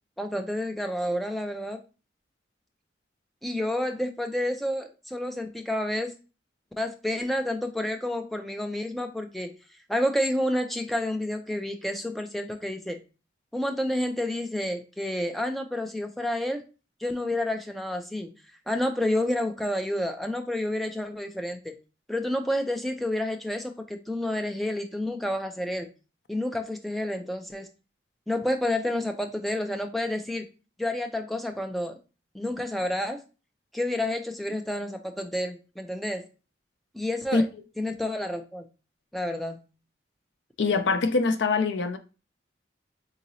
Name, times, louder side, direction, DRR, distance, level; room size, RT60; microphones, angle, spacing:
voice 1, 0.2-1.8 3.4-6.1 6.8-9.5 9.9-13.0 13.5-16.6 17.0-18.3 18.7-21.8 22.1-25.9 26.3-27.7 28.3-30.5 30.8-32.0 32.3-33.2 33.7-36.2 36.9-37.5 37.8-38.7 39.1-39.6, left 1 dB, ahead, 0.3 m, -29 dB
voice 2, 40.6-42.0, left 4 dB, 80° left, 0.4 m, -23 dB
3.9 x 2.9 x 2.6 m
head